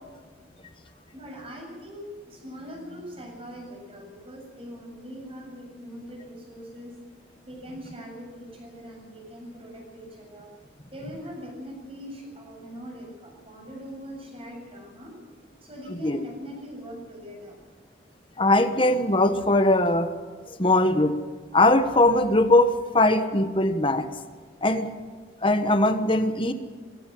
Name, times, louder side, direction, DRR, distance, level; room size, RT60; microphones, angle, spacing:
voice 1, 1.1-7.0 7.4-10.5 10.9-15.1 15.6-17.6, equal, 30° right, 1 dB, 7.4 m, -41 dB
voice 2, 15.9-16.2 18.4-20.1 20.5-21.2 21.5-24.1 24.6-24.9 25.4-26.5, left 2 dB, 30° left, 9 dB, 1.3 m, -21 dB
20.5 x 18.0 x 7.8 m, 1.5 s
head